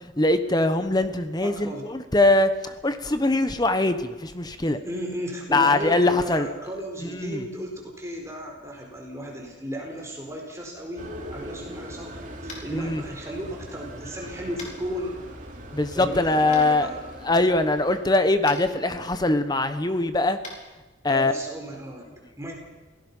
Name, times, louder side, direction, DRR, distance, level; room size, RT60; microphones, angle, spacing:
voice 1, 0.2-4.8 5.5-6.5 7.2-7.4 12.7-13.0 15.7-16.9 17.3-20.4 21.0-21.3, left 2 dB, 20° left, 10 dB, 1.1 m, -22 dB
voice 2, 1.4-1.9 4.6-15.2 15.9-17.0 21.1-22.1 22.4-22.6, equal, 15° right, 0 dB, 4.4 m, -35 dB
sound 1, 11.0-18.1, equal, 40° right, 3.0 m, -40 dB
Tap, 12.5-12.7 14.6-14.7 16.5-16.6 18.4-18.6 20.4-20.6, left 3 dB, 40° left, 4.5 m, -39 dB
27.0 x 18.0 x 5.6 m, 1.2 s
head